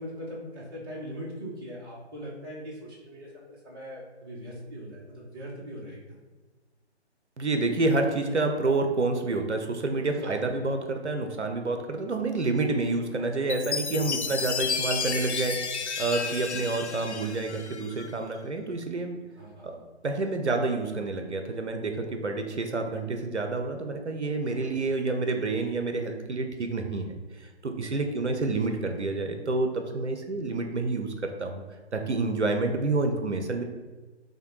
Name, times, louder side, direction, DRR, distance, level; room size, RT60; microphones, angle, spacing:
voice 1, 0.0-6.2 10.1-10.6 14.1-14.4 19.4-19.8 24.5-24.8 28.1-29.2, equal, 20° right, -5 dB, 0.8 m, -41 dB
voice 2, 7.4-15.6 16.0-19.2 19.6-19.7 20.0-27.1 27.4-31.5 31.9-33.6, right 3 dB, 75° right, 5 dB, 0.7 m, -28 dB
Chime, 13.5-18.1, left 5 dB, 75° left, 0.6 m, -32 dB
6.3 x 2.3 x 3.1 m, 1.3 s
figure-of-eight pair, 140°, 34 cm